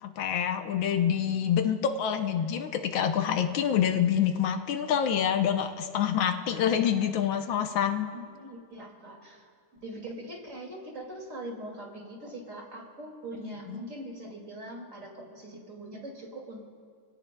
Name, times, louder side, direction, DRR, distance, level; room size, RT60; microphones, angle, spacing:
voice 1, 0.0-8.1 13.4-13.8, left 8 dB, 85° left, 6 dB, 1.6 m, -27 dB
voice 2, 8.1-9.5 9.8-16.7, right 1 dB, 40° right, -1 dB, 2.7 m, -42 dB
27.0 x 17.0 x 2.3 m, 2.1 s
omnidirectional pair, 2.1 m